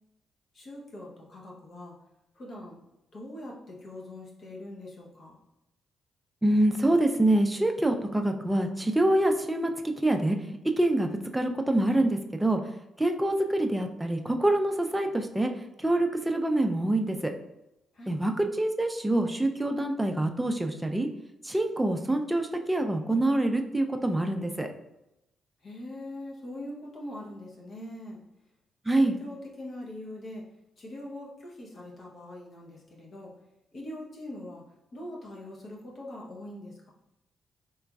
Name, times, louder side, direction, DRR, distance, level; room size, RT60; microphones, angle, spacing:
voice 1, 0.5-1.9 2.3-2.8 3.1-5.4 17.9-18.1 25.6-28.2 28.9-30.4 30.8-33.3 33.7-34.6 34.9-36.9, left 1 dB, 55° left, -3 dB, 0.9 m, -42 dB
voice 2, 6.4-9.7 10.0-10.4 10.8-11.1 11.3-12.6 13.0-15.5 15.8-17.3 18.1-21.1 21.4-24.7 28.9-29.2, right 1 dB, 10° right, 5 dB, 0.4 m, -25 dB
3.3 x 2.9 x 2.3 m, 0.90 s
supercardioid pair, 55°, 0 cm